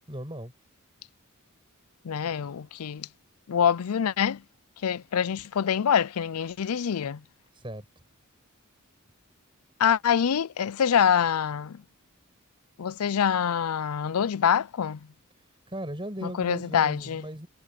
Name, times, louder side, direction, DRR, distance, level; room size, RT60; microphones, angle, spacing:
voice 1, 0.1-0.5 7.5-7.8 15.7-17.5, right 1 dB, 25° right, 6.2 m, -37 dB
voice 2, 2.0-3.1 3.5-4.4 4.8-7.2 9.8-11.8 12.8-15.0 16.2-17.2, left 8 dB, 90° left, 0.5 m, -25 dB
head